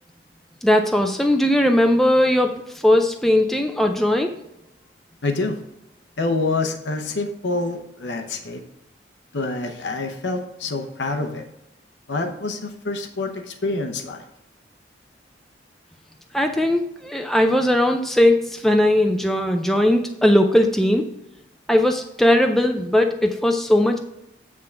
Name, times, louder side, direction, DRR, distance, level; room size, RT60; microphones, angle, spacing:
voice 1, 0.6-4.4 16.3-21.0 21.7-24.0, left 1 dB, ahead, 4 dB, 0.4 m, -19 dB
voice 2, 5.2-5.6 6.2-8.6 9.3-11.5 12.1-14.2, left 3 dB, 75° left, 5 dB, 0.8 m, -26 dB
8.6 x 3.7 x 5.6 m, 0.85 s
head